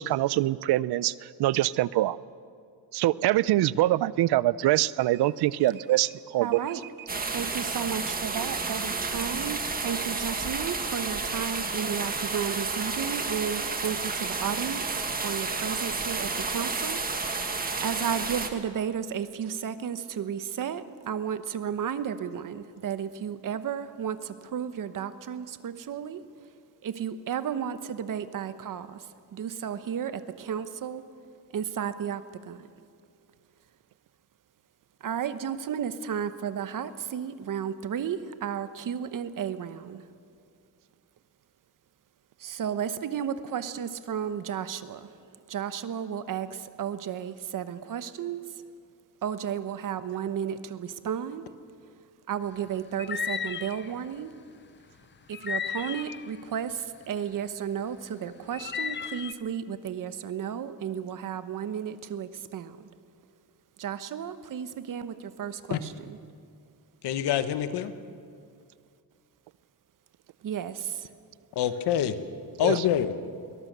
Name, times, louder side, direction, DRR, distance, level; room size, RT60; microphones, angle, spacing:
voice 1, 0.0-2.2 2.9-6.6 72.6-72.8, right 15 dB, 75° right, 20 dB, 0.6 m, -24 dB
voice 2, 6.4-6.9 7.3-17.5 17.8-26.3 26.8-31.0 31.5-32.7 35.0-40.0 42.4-45.2 45.5-48.6 49.2-51.4 52.3-54.3 55.3-62.9 63.8-66.2 70.4-71.1, right 8 dB, 55° right, 12 dB, 1.1 m, -33 dB
sound 1, 7.1-18.5, right 4 dB, 20° right, 1.6 m, -31 dB
sound 2, 53.0-53.9 55.3-56.4 58.5-59.3, left 7 dB, 30° left, 0.7 m, -33 dB
voice 3, 67.0-67.9 71.5-72.2 72.6-73.1, left 10 dB, 80° left, 11 dB, 1.3 m, -25 dB
22.0 x 19.5 x 6.8 m, 2.3 s
cardioid pair, 130°, 39 cm